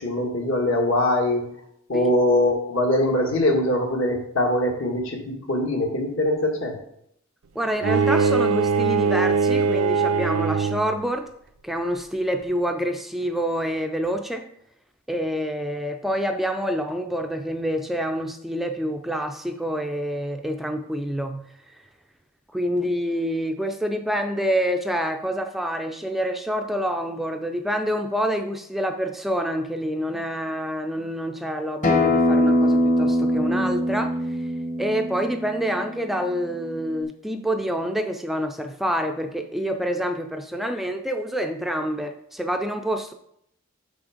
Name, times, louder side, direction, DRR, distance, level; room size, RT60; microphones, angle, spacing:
voice 1, 0.0-1.4 1.9-5.2 5.5-6.8, left 1 dB, 70° left, 1 dB, 1.7 m, -22 dB
voice 2, 7.6-11.3 11.6-14.5 15.1-21.4 22.5-34.5 34.8-43.1, equal, ahead, 5 dB, 0.3 m, -27 dB
Bowed string instrument, 7.8-11.0, right 5 dB, 90° right, 0.5 m, -21 dB
Acoustic guitar, 31.8-37.0, left 1 dB, 35° left, 1.1 m, -23 dB
6.1 x 5.7 x 5.0 m, 0.73 s
head